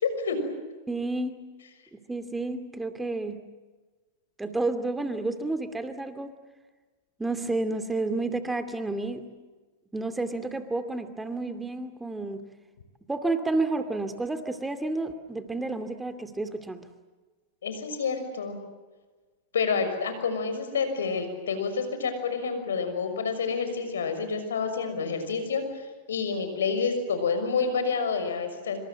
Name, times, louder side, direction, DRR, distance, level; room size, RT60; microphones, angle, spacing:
voice 1, 0.0-0.4 17.6-18.6 19.5-25.6 26.1-28.8, left 5 dB, 85° left, 8 dB, 6.2 m, -28 dB
voice 2, 0.9-1.4 1.9-3.4 4.4-6.3 7.2-9.2 9.9-12.5 13.1-16.9, right 2 dB, 10° right, 9 dB, 2.5 m, -30 dB
27.0 x 26.0 x 7.6 m, 1.3 s
hypercardioid pair, 105°, 0 cm